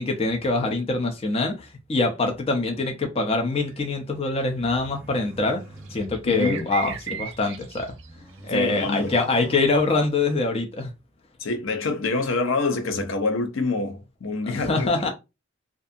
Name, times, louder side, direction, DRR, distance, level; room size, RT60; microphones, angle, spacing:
voice 1, 0.0-5.6 5.9-7.9 8.4-10.9 14.5-15.1, left 3 dB, 30° left, 0.4 m, -24 dB
sound 1, 3.7-3.9 4.3-4.5 5.9-8.6, right 7 dB, 70° right, 0.3 m, -35 dB
sound 2, 4.5-7.1 7.6-10.4, equal, 10° right, 0.7 m, -44 dB
voice 2, 6.2-6.7 8.5-9.1 11.4-15.1, left 3 dB, 80° left, 0.6 m, -26 dB
2.6 x 2.3 x 2.5 m
head